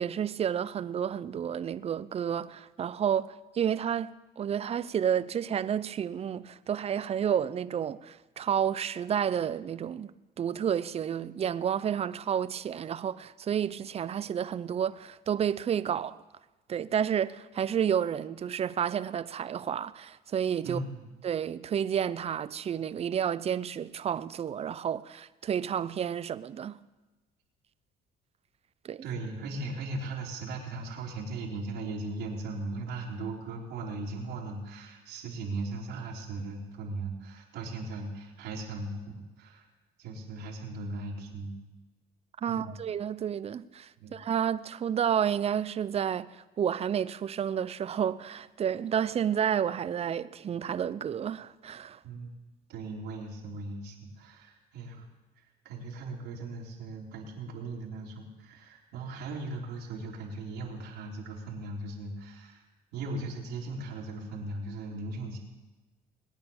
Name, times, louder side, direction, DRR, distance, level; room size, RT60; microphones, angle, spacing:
voice 1, 0.0-10.1 10.4-16.2 16.7-20.8 21.2-26.8 28.8-29.0 42.4-46.3 46.6-52.0, right 8 dB, 35° right, 0.6 m, -30 dB
voice 2, 20.6-21.1 29.0-39.7 40.0-41.6 42.5-42.7 44.0-44.2 52.0-52.3 52.7-55.1 55.4-62.7 62.9-65.4, right 2 dB, 85° right, 3.3 m, -38 dB
20.5 x 9.3 x 7.1 m
cardioid pair, 110°, 17 cm